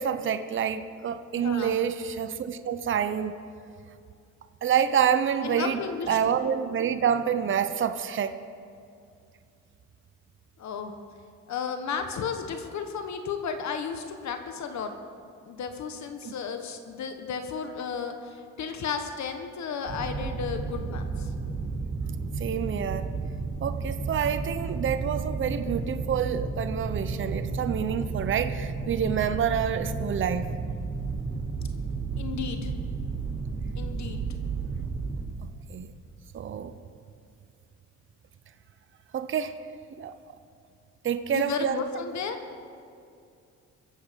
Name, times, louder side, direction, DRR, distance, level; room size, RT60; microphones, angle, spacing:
voice 1, 0.0-3.4 4.6-5.8 6.1-8.4 16.2-16.3 22.4-23.1 23.6-30.5 35.7-35.9 36.3-36.7 39.1-39.6 40.0-40.1 41.0-41.8, right 8 dB, 40° right, 10 dB, 0.7 m, -27 dB
voice 2, 1.4-1.7 5.4-6.4 10.6-10.9 11.5-14.9 15.4-21.3 32.2-32.9 33.8-34.2 41.3-42.4, left 6 dB, 65° left, 6 dB, 1.3 m, -33 dB
sound 1, 19.9-35.2, right 4 dB, 65° right, 4.0 m, -32 dB
22.5 x 8.1 x 5.2 m, 2.4 s
cardioid pair, 90°, 30 cm